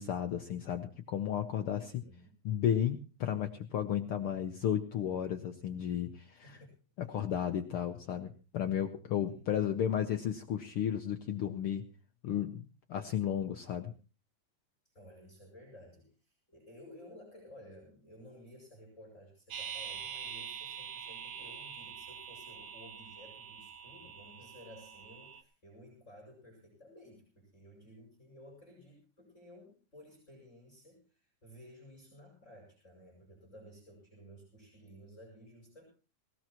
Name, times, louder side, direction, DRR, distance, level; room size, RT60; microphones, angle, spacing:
voice 1, 0.0-1.9 2.4-6.6 7.1-11.8 12.2-13.9, left 9 dB, 75° left, 6 dB, 1.2 m, -33 dB
voice 2, 1.7-2.3 6.4-6.7 7.0-7.2 9.2-9.6 14.8-35.8, equal, 20° left, -3 dB, 5.9 m, -55 dB
sound 1, 19.5-25.4, right 7 dB, 85° right, 2.7 m, -45 dB
19.0 x 18.0 x 3.0 m, 0.35 s
omnidirectional pair, 3.6 m